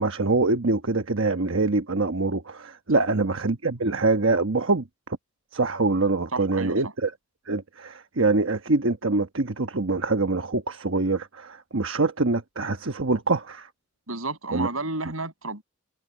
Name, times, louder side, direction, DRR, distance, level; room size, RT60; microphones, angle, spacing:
voice 1, 0.0-4.9 5.5-7.1 7.5-13.7 14.5-14.7, right 3 dB, 65° right, 1.2 m, -24 dB
voice 2, 6.3-6.9 14.1-15.6, right 3 dB, 85° right, 7.6 m, -31 dB
head